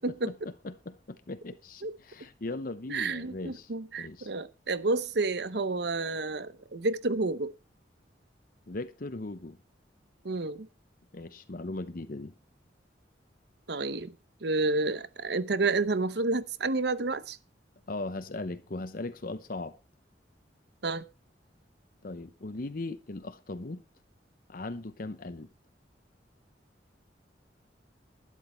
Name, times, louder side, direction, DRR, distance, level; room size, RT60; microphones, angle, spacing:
voice 1, 0.3-3.7 4.0-4.3 8.7-9.6 11.1-12.3 17.9-19.8 22.0-23.8 24.5-25.5, left 2 dB, 50° left, 0.8 m, -38 dB
voice 2, 2.9-7.5 10.2-10.7 13.7-14.1 14.4-17.4 20.8-21.0, right 3 dB, 65° right, 0.8 m, -30 dB
12.0 x 11.0 x 4.4 m
head